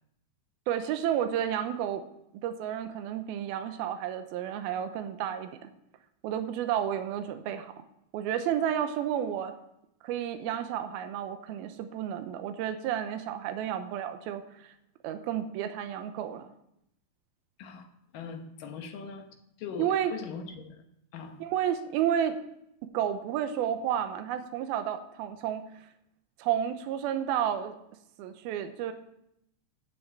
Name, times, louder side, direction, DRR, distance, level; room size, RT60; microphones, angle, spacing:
voice 1, 0.7-2.1 2.4-5.7 6.2-7.8 8.1-9.5 10.0-14.7 15.0-16.5 19.8-20.1 21.4-22.4 22.8-25.7 26.4-27.8 28.2-28.9, right 10 dB, 75° right, 9 dB, 2.7 m, -31 dB
voice 2, 18.1-20.8 21.1-21.4, left 5 dB, 65° left, 5 dB, 2.5 m, -41 dB
12.0 x 6.3 x 8.3 m, 0.79 s
omnidirectional pair, 4.6 m